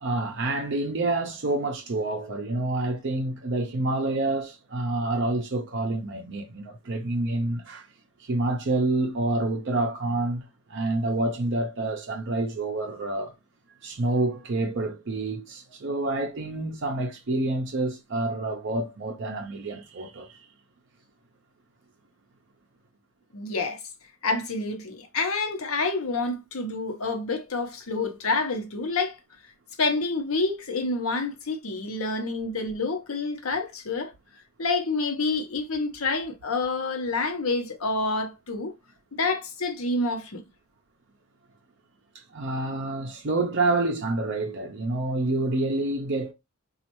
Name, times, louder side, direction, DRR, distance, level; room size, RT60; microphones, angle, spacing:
voice 1, 0.0-7.9 8.2-10.4 10.7-13.3 13.8-20.4 42.1-46.3, right 2 dB, 55° right, 0.5 m, -28 dB
voice 2, 23.3-23.8 24.2-29.2 29.8-34.1 34.6-38.7 39.1-40.4, left 3 dB, 75° left, 0.8 m, -28 dB
4.2 x 2.4 x 2.9 m
head